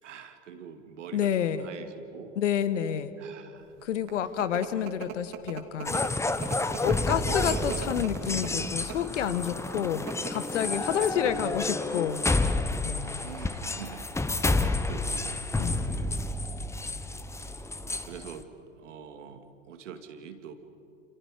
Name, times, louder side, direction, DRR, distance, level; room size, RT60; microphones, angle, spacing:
voice 1, 0.0-2.4 3.2-3.8 5.0-5.2 13.0-14.1 14.8-15.4 15.8-16.3 17.4-18.5 18.8-20.5, right 7 dB, 70° right, 7 dB, 2.4 m, -45 dB
voice 2, 1.1-1.7 2.4-3.1 3.8-6.0 6.8-12.2 12.8-13.2 15.6-16.0, left 9 dB, 70° left, 13 dB, 1.5 m, -29 dB
sound 1, 3.8-9.2 9.9-10.3 10.7-10.8 11.0-11.5, right 10 dB, 45° right, 2.7 m, -40 dB
sound 2, 5.9-18.4, left 2 dB, 5° left, 1.0 m, -30 dB
29.0 x 28.0 x 5.0 m, 2.9 s
figure-of-eight pair, 90°, 38 cm